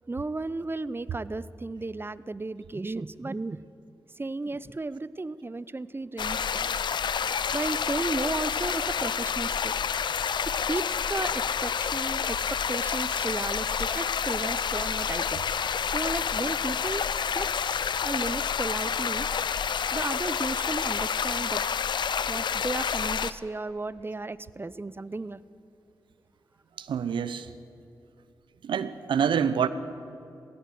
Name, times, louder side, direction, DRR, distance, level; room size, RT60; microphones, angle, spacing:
voice 1, 0.1-3.6 4.1-6.8 7.5-9.7 10.5-15.4 15.7-19.3 19.9-21.6 22.3-25.4, right 3 dB, 25° right, 18 dB, 0.7 m, -34 dB
sound 1, 6.2-23.3, left 7 dB, 70° left, 0.6 m, -29 dB
voice 2, 26.8-27.5 28.6-29.7, right 7 dB, 80° right, 14 dB, 0.9 m, -27 dB
18.5 x 16.5 x 9.3 m, 2.7 s
supercardioid pair, 45°, 8 cm